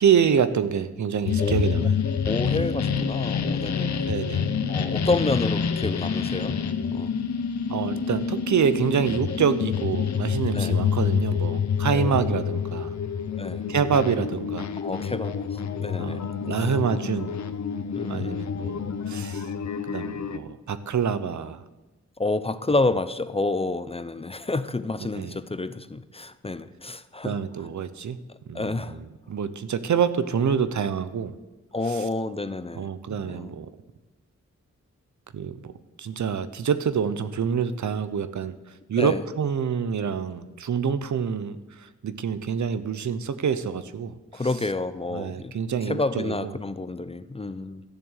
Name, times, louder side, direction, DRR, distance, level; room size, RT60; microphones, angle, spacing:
voice 1, 0.0-2.0 4.0-4.5 7.7-12.9 13.7-14.7 16.0-17.4 18.1-19.5 19.9-21.6 25.1-25.4 27.2-28.2 28.5-31.4 31.8-32.1 32.7-33.7 35.3-35.7 36.0-38.5 38.9-44.6 45.1-46.5, right 7 dB, 75° right, 13 dB, 0.8 m, -26 dB
sound 1, 1.3-20.4, left 6 dB, 70° left, 0.8 m, -27 dB
voice 2, 2.2-4.1 4.7-6.6 6.9-7.1 10.5-10.8 11.9-12.3 13.4-13.6 14.8-16.2 18.0-18.5 22.2-27.4 28.5-28.9 31.7-32.8 33.2-33.5 39.0-39.2 44.3-45.5 45.8-47.8, left 2 dB, 20° left, 13 dB, 0.5 m, -29 dB
13.5 x 7.4 x 8.0 m, 1.1 s
wide cardioid pair, 125°, 29 cm